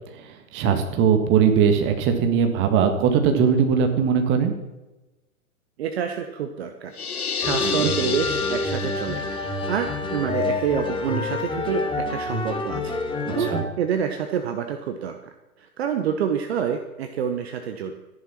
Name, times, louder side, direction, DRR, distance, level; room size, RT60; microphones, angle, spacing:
voice 1, 0.2-4.5 7.6-7.9 13.2-13.6, right 7 dB, 25° right, 6 dB, 1.8 m, -20 dB
voice 2, 5.8-13.0 13.3-15.2 15.6-17.9, right 7 dB, 45° right, 7 dB, 1.2 m, -28 dB
sound 1, 6.9-9.5, left 6 dB, 80° left, 1.0 m, -29 dB
sound 2, 7.4-13.6, left 2 dB, 10° left, 1.4 m, -28 dB
14.0 x 10.5 x 5.8 m, 1.1 s
figure-of-eight pair, 110°, 44 cm